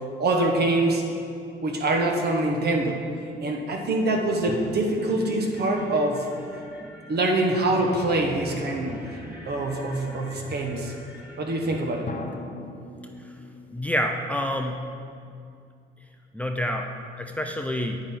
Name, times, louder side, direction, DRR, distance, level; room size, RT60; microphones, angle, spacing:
voice 1, 0.2-1.0 1.6-3.0 3.4-6.3 7.1-8.9 9.4-10.9 11.4-12.1, right 2 dB, 55° right, 2 dB, 1.4 m, -24 dB
sound 1, 4.4-11.8, equal, 10° right, 2.0 m, -43 dB
sound 2, 4.5-7.8 12.1-15.4, left 2 dB, 40° left, 0.9 m, -42 dB
voice 2, 13.7-14.8 16.3-16.9 17.2-18.0, equal, 5° left, 4 dB, 0.6 m, -27 dB
9.9 x 8.7 x 3.8 m, 2.4 s
cardioid pair, 90°, 20 cm